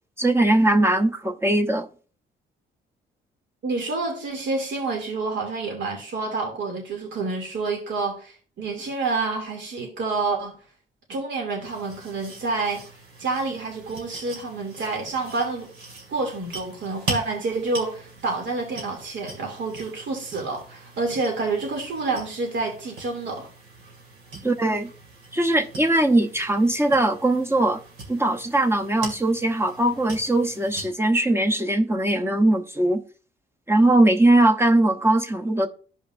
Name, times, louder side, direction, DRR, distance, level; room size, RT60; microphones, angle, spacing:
voice 1, 0.2-1.9 24.4-24.9 25.3-27.8 28.1-33.0 33.7-35.7, right 1 dB, 10° right, 0.8 m, -20 dB
voice 2, 3.6-10.6 11.1-12.8 13.2-15.7 16.1-23.5, right 3 dB, 65° right, 2.7 m, -28 dB
sound 1, 11.6-30.9, right 3 dB, 90° right, 2.3 m, -41 dB
13.5 x 5.3 x 2.6 m
cardioid pair, 90°, 20 cm